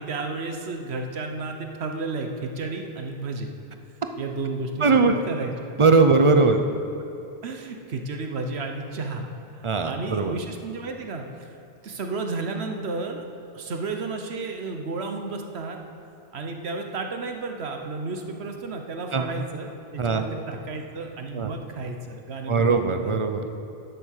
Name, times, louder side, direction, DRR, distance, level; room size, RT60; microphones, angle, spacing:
voice 1, 0.0-3.5 4.2-5.7 7.4-9.3 9.5-11.5 11.8-13.2 13.5-15.8 16.3-23.2, right 3 dB, 75° right, 4 dB, 1.2 m, -32 dB
voice 2, 4.8-5.2 5.8-6.6 9.6-10.4 19.1-19.3 20.0-20.3 21.4-21.5 22.5-23.5, right 4 dB, 35° right, 7 dB, 0.6 m, -20 dB
11.0 x 8.2 x 6.5 m, 2.7 s
omnidirectional pair, 1.1 m